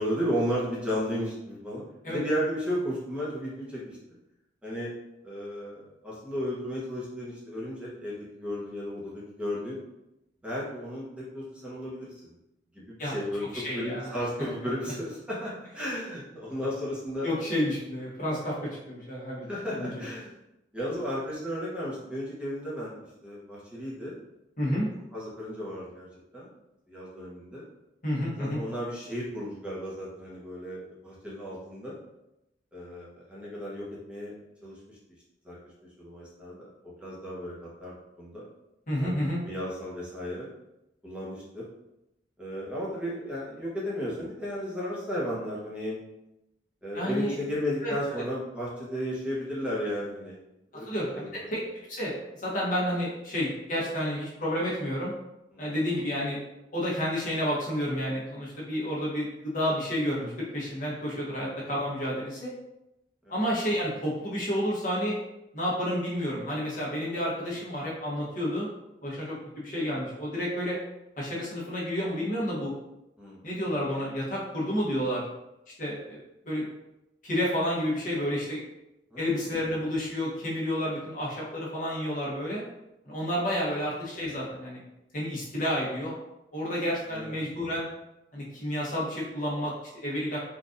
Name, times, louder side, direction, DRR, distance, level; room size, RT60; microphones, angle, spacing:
voice 1, 0.0-1.8 2.1-4.0 4.6-4.9 5.2-9.8 10.4-12.1 12.7-17.3 19.5-20.3 20.7-22.9 23.2-24.2 24.6-24.8 25.1-26.1 26.3-26.5 26.9-27.6 28.4-31.9 32.7-34.3 34.6-35.0 35.4-35.6 36.0-38.4 39.0-40.5 41.0-41.6 42.4-46.0 46.8-50.4 50.7-51.3 55.5-55.6 61.4-61.5 63.2-63.4 73.2-73.4 79.1-79.4 87.1-87.4, equal, 5° right, -7 dB, 0.8 m, -34 dB
voice 2, 13.5-14.1 14.4-14.5 17.2-19.4 19.7-20.0 24.6-24.9 28.0-28.6 38.9-39.4 46.9-47.4 47.8-48.2 50.9-51.6 51.9-52.1 52.4-55.1 55.6-56.4 56.7-62.5 63.3-65.2 65.5-68.7 69.0-70.8 71.2-72.7 73.4-75.2 75.8-76.2 76.4-76.6 77.2-78.6 79.2-82.6 83.0-84.8 85.1-86.2 86.5-87.9 88.3-90.4, equal, 45° left, -5 dB, 1.0 m, -30 dB
3.9 x 2.5 x 2.5 m, 0.91 s
head